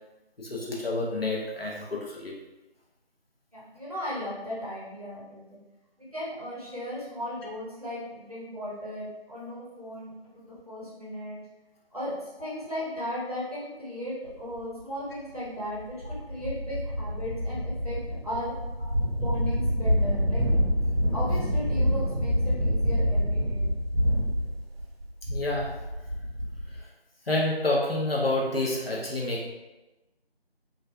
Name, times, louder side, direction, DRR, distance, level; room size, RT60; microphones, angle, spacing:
voice 1, 0.4-2.3 25.3-25.8 26.7-26.9 27.3-29.5, left 2 dB, 70° left, -3 dB, 0.8 m, -28 dB
voice 2, 3.5-5.6 6.0-11.4 11.9-18.0 18.2-18.5 19.2-20.4 21.1-23.7, left 1 dB, 35° right, -8 dB, 0.7 m, -36 dB
sound 1, 14.6-14.7 15.3-15.4 15.8-26.8, equal, 70° right, 0.6 m, -27 dB
2.5 x 2.4 x 2.3 m, 1.0 s
figure-of-eight pair, 170°, 31 cm